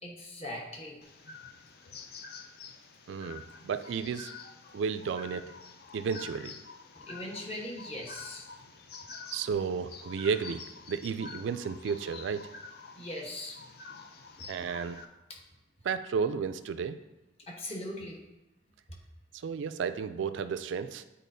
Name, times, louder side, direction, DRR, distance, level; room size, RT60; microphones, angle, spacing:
voice 1, 0.0-1.0 6.9-8.5 13.0-13.6 15.3-15.4 17.5-18.2, left 1 dB, 35° left, -1 dB, 1.1 m, -40 dB
sound 1, 1.0-15.0, left 4 dB, 55° left, 0.5 m, -48 dB
voice 2, 3.1-4.3 4.7-5.5 5.9-6.6 9.3-12.4 14.5-15.0 15.8-17.0 19.3-21.0, right 6 dB, 80° right, 11 dB, 0.3 m, -33 dB
9.2 x 4.1 x 2.6 m, 1.0 s
head